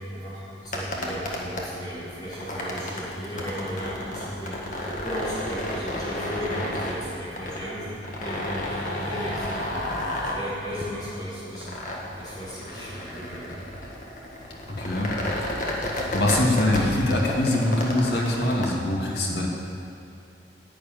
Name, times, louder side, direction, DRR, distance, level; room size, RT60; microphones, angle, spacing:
voice 1, 0.0-11.8 12.2-13.5, equal, 25° left, -11 dB, 4.1 m, -35 dB
sound 1, 0.6-18.7, left 1 dB, 45° left, 1.8 m, -32 dB
voice 2, 14.7-15.1 15.6-15.7 16.1-19.5, left 1 dB, 70° left, -2 dB, 2.2 m, -23 dB
11.0 x 8.2 x 9.5 m, 2.5 s
head